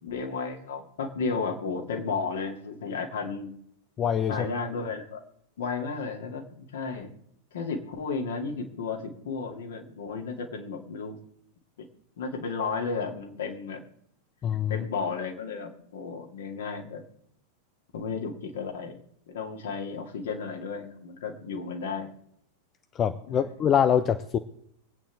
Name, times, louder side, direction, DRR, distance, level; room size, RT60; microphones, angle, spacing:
voice 1, 0.0-3.5 4.3-5.2 5.6-7.1 7.5-11.2 11.8-11.9 12.2-13.8 14.7-17.0 17.9-19.0 19.3-22.1 23.3-23.4, left 4 dB, 60° left, 2 dB, 2.5 m, -33 dB
voice 2, 4.0-4.5 14.4-14.9 22.9-24.4, left 8 dB, 30° left, 10 dB, 0.7 m, -24 dB
24.0 x 8.8 x 3.5 m, 0.73 s
figure-of-eight pair, 90°, 0 cm